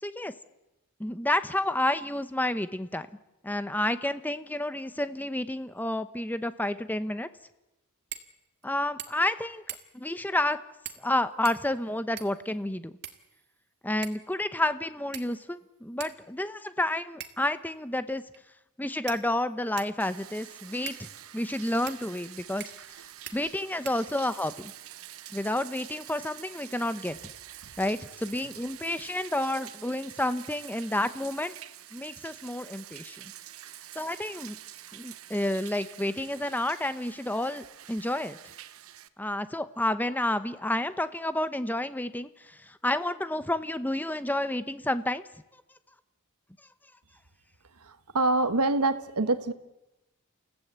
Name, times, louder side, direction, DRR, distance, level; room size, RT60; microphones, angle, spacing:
voice 1, 0.0-0.3 1.0-3.1 3.4-7.3 8.6-9.6 9.9-10.6 11.0-12.9 13.8-18.2 18.8-21.1 21.3-22.6 23.3-24.7 25.3-27.3 27.8-31.5 31.9-33.3 33.9-34.6 34.9-38.4 39.2-45.2, left 1 dB, 10° left, 12 dB, 0.8 m, -30 dB
sound 1, 8.1-8.3 8.6-8.7 9.0-9.3 9.7-10.1 10.8-11.1 11.4-12.5 13.0-13.6 14.0-14.3 15.1-15.5 16.0-16.1 17.2-17.5 18.3-18.4 19.1-20.0 20.9-21.0 21.9-22.0 22.6-22.9 23.3-23.4 23.8-24.4, right 10 dB, 50° right, 1.7 m, -42 dB
Bathtub (filling or washing), 20.0-39.1, right 12 dB, 70° right, 0.9 m, -47 dB
voice 2, 47.8-49.5, right 2 dB, 90° right, 10 dB, 1.3 m, -25 dB
28.5 x 16.0 x 8.1 m, 0.98 s
head